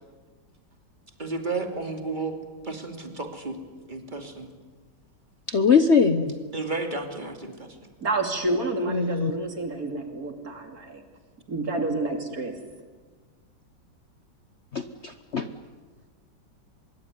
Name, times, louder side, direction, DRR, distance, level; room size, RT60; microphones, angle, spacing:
voice 1, 1.2-2.4 2.6-3.6 3.9-4.5 6.5-7.7, right 3 dB, 25° right, 4 dB, 2.8 m, -32 dB
voice 2, 5.5-6.3 8.9-9.3 14.7-15.4, left 5 dB, 45° left, 9 dB, 1.0 m, -21 dB
voice 3, 8.0-11.0 11.5-12.5, right 2 dB, 50° right, 5 dB, 3.2 m, -29 dB
24.5 x 22.5 x 9.5 m, 1.4 s
omnidirectional pair, 2.0 m